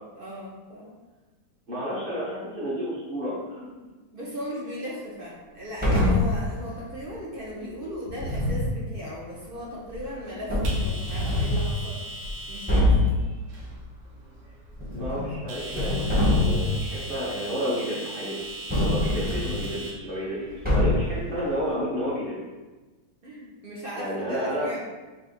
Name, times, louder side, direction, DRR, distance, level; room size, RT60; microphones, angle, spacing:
voice 1, 0.1-1.0 4.1-12.2 12.5-13.1 20.5-20.6 23.2-24.9, equal, 60° right, -5 dB, 0.5 m, -37 dB
voice 2, 1.7-3.7 14.9-18.4 18.8-22.3 23.9-24.7, equal, 35° right, -8 dB, 1.2 m, -31 dB
sound 1, 5.6-21.7, right 1 dB, 90° right, 1.5 m, -41 dB
sound 2, 5.8-6.4 8.1-8.7 9.9-10.0 10.5-11.7 12.2-12.3 12.7-13.1 14.7-15.4 15.7-16.8 18.7-19.7 20.6-21.2, left 1 dB, 10° right, 0.6 m, -23 dB
3.4 x 2.7 x 4.2 m, 1.2 s
omnidirectional pair, 1.8 m